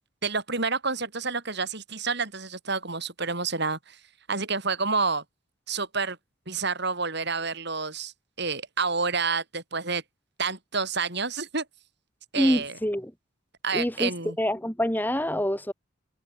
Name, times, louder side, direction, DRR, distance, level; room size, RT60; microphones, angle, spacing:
voice 1, 0.2-4.0 4.3-5.2 5.7-6.2 6.5-8.1 8.4-10.0 10.4-11.6 12.3-12.7 13.6-14.4, right 4 dB, 50° right, 6.4 m, -29 dB
voice 2, 12.4-13.1 13.7-14.1 14.4-15.7, equal, 10° left, 3.8 m, -26 dB
open air
head